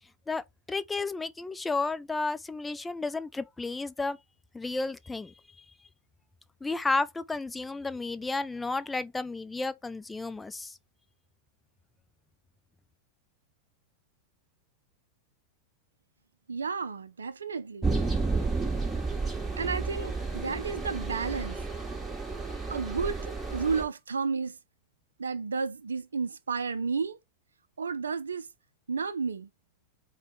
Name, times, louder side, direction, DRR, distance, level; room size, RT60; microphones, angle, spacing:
voice 1, 0.3-4.2 4.5-5.7 6.6-10.8, left 3 dB, 10° left, 0.4 m, -32 dB
voice 2, 16.5-17.9 19.6-21.6 22.7-24.6 25.2-27.2 27.8-28.5 28.9-29.5, right 5 dB, 70° right, 0.5 m, -32 dB
sound 1, 17.8-23.8, right 3 dB, 10° right, 1.4 m, -31 dB
5.0 x 2.3 x 4.0 m
figure-of-eight pair, 90°, 0 cm